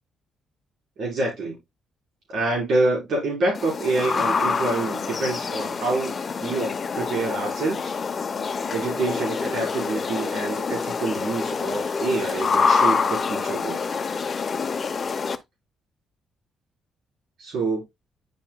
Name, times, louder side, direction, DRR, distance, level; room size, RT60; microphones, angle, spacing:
voice 1, 1.0-1.6 2.3-7.9 8.7-14.0 17.4-17.8, right 2 dB, 65° right, 4.2 m, -27 dB
sound 1, 3.5-15.4, left 5 dB, 40° left, 0.7 m, -26 dB
10.5 x 4.5 x 2.2 m
cardioid pair, 90°, 0 cm